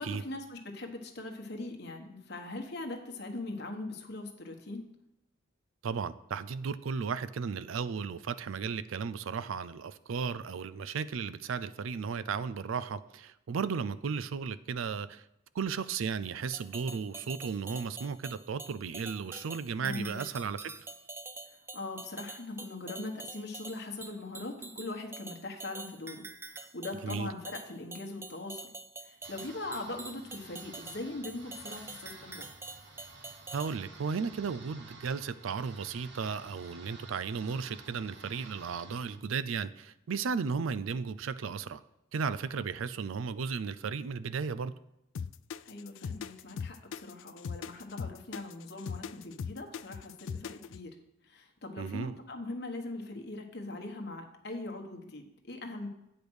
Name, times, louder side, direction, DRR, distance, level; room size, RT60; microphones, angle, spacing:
voice 1, 0.0-4.8 19.8-20.2 21.7-28.7 29.0-32.5 45.6-50.9 51.2-55.9, left 2 dB, 55° left, 3 dB, 1.2 m, -41 dB
voice 2, 5.8-15.2 15.5-20.7 27.0-27.3 33.5-41.8 42.1-44.7 51.8-52.2, right 5 dB, 80° right, 16 dB, 0.4 m, -35 dB
sound 1, 16.4-33.8, right 3 dB, 10° right, 0.4 m, -46 dB
sound 2, 29.2-39.2, right 3 dB, 60° right, 1.2 m, -52 dB
sound 3, 45.1-50.8, left 6 dB, 75° left, 0.4 m, -39 dB
8.7 x 5.1 x 6.2 m, 0.84 s
head